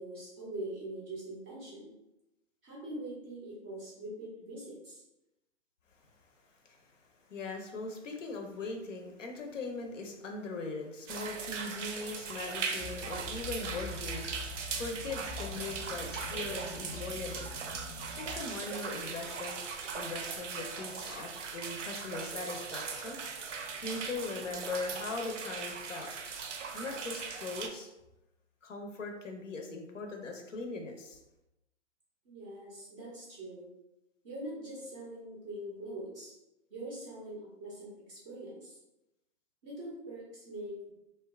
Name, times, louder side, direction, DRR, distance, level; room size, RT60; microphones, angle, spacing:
voice 1, 0.0-1.9 2.6-5.0 32.2-33.7 34.2-36.3 36.7-38.8 39.6-40.9, right 1 dB, 15° right, -6 dB, 0.3 m, -43 dB
voice 2, 7.3-17.5 18.2-19.6 19.9-23.2 23.8-26.1 26.7-27.9 28.6-31.2, left 3 dB, 85° left, 3 dB, 0.6 m, -40 dB
sound 1, 11.1-27.7, right 5 dB, 80° right, 0.5 m, -39 dB
sound 2, 12.8-18.4, left 2 dB, 45° left, 0.5 m, -45 dB
2.7 x 2.2 x 2.2 m, 0.92 s
hypercardioid pair, 125°, 36 cm